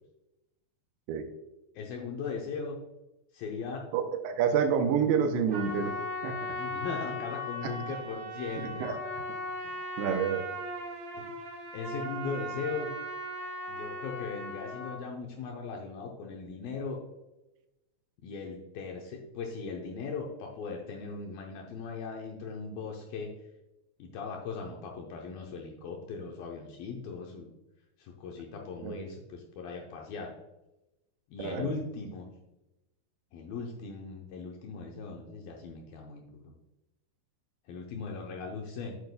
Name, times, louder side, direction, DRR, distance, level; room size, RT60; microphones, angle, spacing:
voice 1, 1.8-2.8 3.3-3.9 6.5-8.9 11.1-11.2 11.7-12.9 13.7-17.0 18.2-23.3 24.0-27.5 28.0-30.3 31.3-32.3 33.3-36.5 37.7-39.0, left 4 dB, 75° left, 1 dB, 2.2 m, -38 dB
voice 2, 3.9-5.9 6.2-6.5 8.8-9.0 10.0-10.4 28.8-29.0 31.4-31.7, right 7 dB, 85° right, 6 dB, 2.8 m, -28 dB
Trumpet, 5.5-15.0, left 1 dB, 55° right, 1.8 m, -38 dB
9.1 x 8.2 x 2.2 m, 0.97 s
omnidirectional pair, 5.0 m